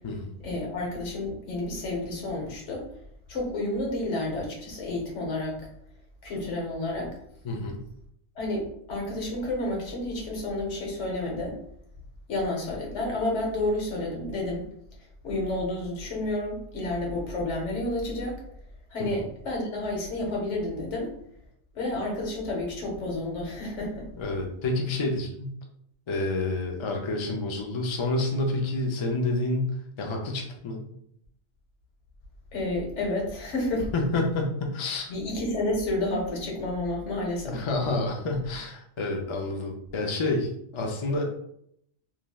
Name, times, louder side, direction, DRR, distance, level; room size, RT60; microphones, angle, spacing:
voice 1, 0.4-2.8 3.3-5.7 6.2-7.1 8.4-11.6 12.3-14.7 15.2-18.4 18.9-21.1 21.7-24.1 32.5-33.9 35.1-37.6, left 1 dB, 85° left, -1 dB, 1.3 m, -30 dB
voice 2, 7.4-7.8 19.0-19.1 24.2-25.6 26.1-30.8 33.9-35.1 37.5-41.2, left 2 dB, 50° left, 1 dB, 0.3 m, -29 dB
3.1 x 2.6 x 2.3 m, 0.71 s
omnidirectional pair, 1.2 m